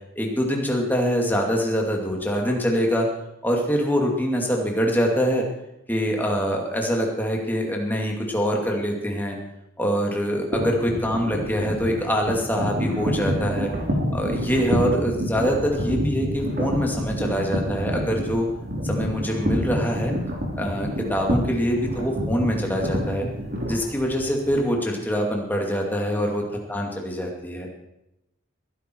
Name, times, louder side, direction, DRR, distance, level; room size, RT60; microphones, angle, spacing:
voice 1, 0.2-3.1 3.4-5.4 5.9-9.4 9.8-13.7 14.1-18.5 18.8-20.1 20.5-23.3 23.6-26.4 26.7-27.7, equal, 10° left, 0 dB, 2.4 m, -24 dB
sound 1, 10.5-24.6, equal, 50° right, 3.4 m, -28 dB
21.0 x 11.0 x 4.6 m, 0.89 s
head